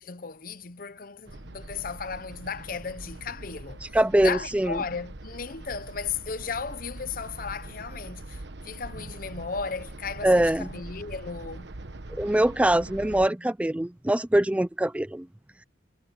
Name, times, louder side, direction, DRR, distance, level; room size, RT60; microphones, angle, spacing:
voice 1, 0.0-3.8 4.2-11.7, left 5 dB, 50° left, 0.8 m, -35 dB
sound 1, 1.2-13.3, right 2 dB, 70° right, 1.2 m, -42 dB
voice 2, 3.9-4.8 10.2-10.7 12.2-15.3, right 1 dB, 5° right, 0.3 m, -23 dB
head